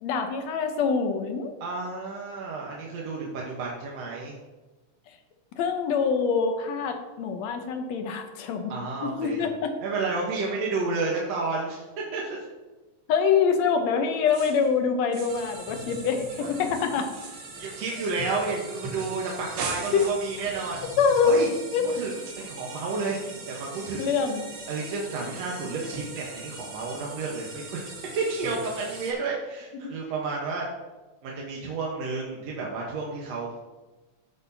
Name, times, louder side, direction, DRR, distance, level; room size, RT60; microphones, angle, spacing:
voice 1, 0.0-1.6 5.6-8.7 9.0-9.8 13.1-17.1 19.9-20.1 21.0-21.3 21.7-21.8 24.0-24.5 29.7-29.9, left 6 dB, 70° left, 5 dB, 2.0 m, -25 dB
voice 2, 1.6-4.3 8.7-9.5 9.8-12.4 17.6-20.8 21.2-21.5 22.0-23.2 23.5-24.1 24.7-27.8 28.2-30.6 31.2-33.6, right 3 dB, 65° right, -3 dB, 2.1 m, -31 dB
sound 1, 14.3-14.7 15.1-15.5 15.8-18.5 19.0-19.2 19.5-20.4, right 5 dB, 90° right, 2.7 m, -40 dB
sound 2, 15.3-29.1, right 2 dB, 40° right, 2.3 m, -41 dB
16.0 x 6.1 x 2.8 m, 1.2 s
omnidirectional pair, 3.5 m